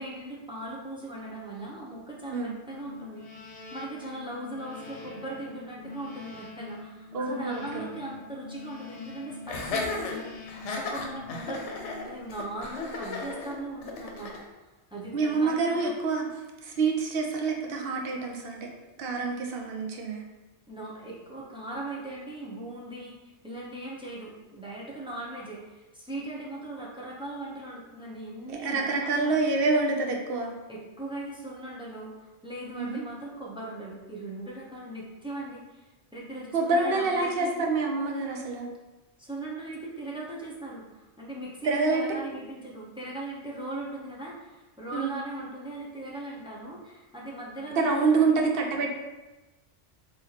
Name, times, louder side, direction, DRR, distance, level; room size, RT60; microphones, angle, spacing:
voice 1, 0.0-14.4 14.9-15.9 20.7-29.6 30.7-37.7 39.2-48.5, right 2 dB, 5° right, -4 dB, 0.4 m, -39 dB
sound 1, 2.7-12.6, left 4 dB, 60° left, 1.0 m, -45 dB
voice 2, 7.1-7.9 15.1-16.3 16.6-18.7 19.0-20.2 28.5-30.5 32.8-33.0 36.5-38.7 41.6-42.1 44.9-45.2 47.8-48.9, right 3 dB, 60° right, 1 dB, 0.7 m, -27 dB
Laughter, 9.5-14.4, left 3 dB, 90° left, 0.9 m, -35 dB
4.0 x 3.1 x 2.8 m, 1.1 s
omnidirectional pair, 1.2 m